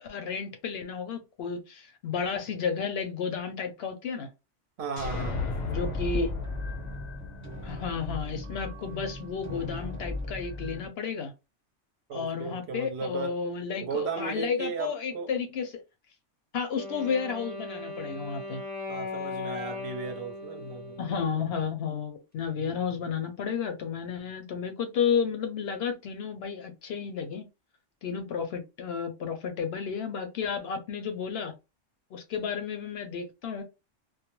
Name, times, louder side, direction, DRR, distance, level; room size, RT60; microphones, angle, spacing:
voice 1, 0.0-4.3 5.7-6.4 7.6-11.3 12.1-15.8 16.5-18.6 21.0-27.4 28.0-31.5 32.1-33.6, left 6 dB, 65° left, 0.7 m, -32 dB
voice 2, 4.8-5.5 12.1-13.4 13.8-15.3 18.9-21.0, right 5 dB, 65° right, 0.8 m, -35 dB
sound 1, 5.0-8.6, left 3 dB, 90° left, 1.0 m, -35 dB
sound 2, 5.7-10.9, left 1 dB, 15° right, 0.9 m, -37 dB
Wind instrument woodwind instrument, 16.7-21.8, left 3 dB, 10° left, 0.5 m, -38 dB
2.3 x 2.1 x 2.9 m
omnidirectional pair, 1.3 m